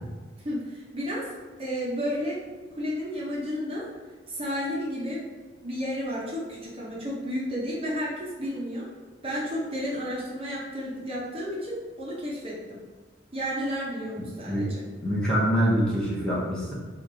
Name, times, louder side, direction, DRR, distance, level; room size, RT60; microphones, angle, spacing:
voice 1, 0.4-1.3 1.6-2.4 2.7-3.8 4.3-5.2 5.6-8.8 9.2-12.8 13.3-14.8, equal, 30° right, -6 dB, 0.7 m, -32 dB
voice 2, 15.0-16.7, equal, 5° left, -7 dB, 0.8 m, -25 dB
3.0 x 2.5 x 3.8 m, 1.4 s
head